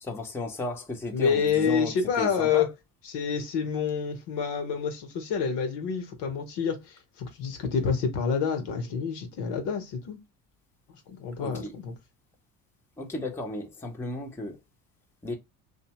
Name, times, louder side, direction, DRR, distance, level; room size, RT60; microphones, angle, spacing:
voice 1, 0.0-2.7 11.4-11.8 13.0-14.6 15.2-15.3, left 2 dB, 5° left, 0.6 m, -34 dB
voice 2, 1.1-2.7 3.0-10.2 10.9-11.9, left 6 dB, 60° left, 0.9 m, -28 dB
2.6 x 2.1 x 2.8 m
supercardioid pair, 75°, 46 cm